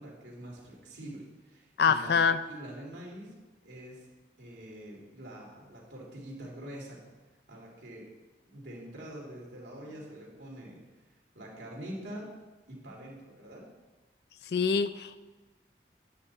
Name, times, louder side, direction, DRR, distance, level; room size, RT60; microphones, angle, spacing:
voice 1, 0.0-2.2 2.5-3.3 3.6-4.1 4.4-7.0 7.5-8.0 8.5-10.8 11.3-12.3 12.7-13.7, right 1 dB, 90° right, -3 dB, 2.9 m, -45 dB
voice 2, 1.8-2.4 14.5-15.2, left 6 dB, 65° left, 12 dB, 0.4 m, -25 dB
9.6 x 8.2 x 4.3 m, 1.2 s
head